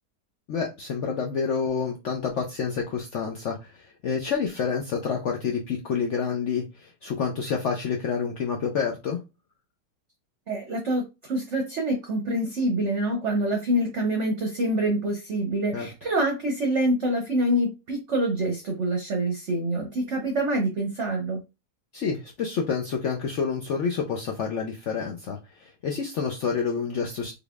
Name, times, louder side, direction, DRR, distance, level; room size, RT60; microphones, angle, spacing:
voice 1, 0.5-9.2 15.7-15.9 21.9-27.3, left 6 dB, 75° left, 0.6 m, -28 dB
voice 2, 10.5-21.4, right 1 dB, 55° right, 0.9 m, -26 dB
3.9 x 3.4 x 2.3 m
omnidirectional pair, 1.9 m